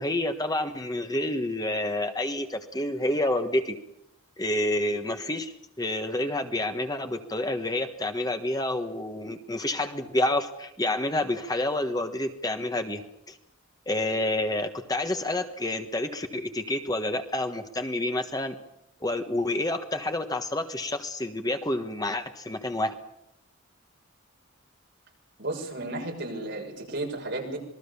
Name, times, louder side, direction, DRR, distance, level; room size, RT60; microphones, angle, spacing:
voice 1, 0.0-3.8 4.4-13.0 13.3-13.4 13.9-18.6 19.0-22.9, left 1 dB, 20° left, 7 dB, 1.3 m, -29 dB
voice 2, 25.4-27.6, right 2 dB, 55° right, 1 dB, 6.6 m, -33 dB
26.5 x 21.0 x 6.9 m, 0.79 s
head